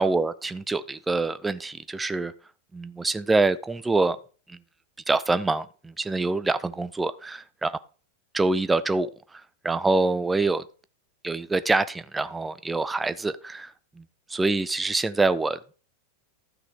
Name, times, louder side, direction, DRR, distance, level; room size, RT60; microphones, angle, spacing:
voice 1, 0.0-2.3 2.7-4.2 4.5-4.6 5.1-7.7 8.3-10.6 11.2-14.0 14.3-15.6, right 3 dB, 10° right, 0.5 m, -25 dB
12.5 x 6.0 x 4.9 m
figure-of-eight pair, 90°, 0 cm